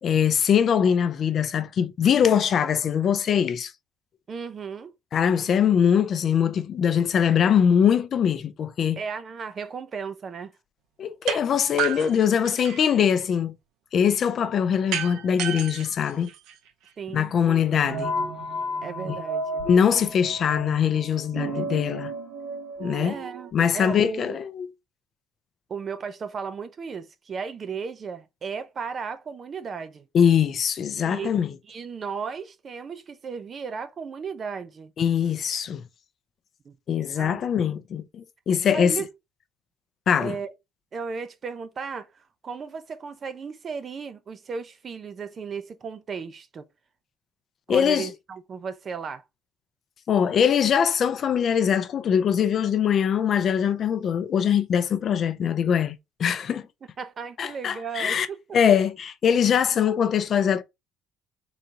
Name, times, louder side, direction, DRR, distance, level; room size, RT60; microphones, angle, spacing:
voice 1, 0.0-3.7 5.1-9.0 11.0-13.6 13.9-16.3 17.1-18.1 19.1-19.2 19.6-22.1 22.8-23.2 23.5-24.7 30.1-31.6 35.0-35.8 36.9-39.0 40.1-40.4 47.7-48.1 50.1-56.7 57.4-58.3 58.5-60.6, left 8 dB, 40° left, 0.5 m, -22 dB
voice 2, 4.3-4.9 9.0-10.5 17.0-17.6 18.8-19.6 23.0-24.4 25.7-30.1 31.0-31.3 31.7-34.9 36.6-36.8 37.2-37.4 38.7-39.1 40.1-40.5 40.9-46.7 47.7-49.2 57.0-58.4, right 5 dB, 30° right, 0.5 m, -35 dB
sound 1, 11.3-11.4 11.8-13.0 14.9-16.9, right 9 dB, 70° right, 0.7 m, -31 dB
sound 2, 17.8-23.5, right 1 dB, 90° right, 1.9 m, -33 dB
3.9 x 2.8 x 4.5 m
cardioid pair, 150°, 0 cm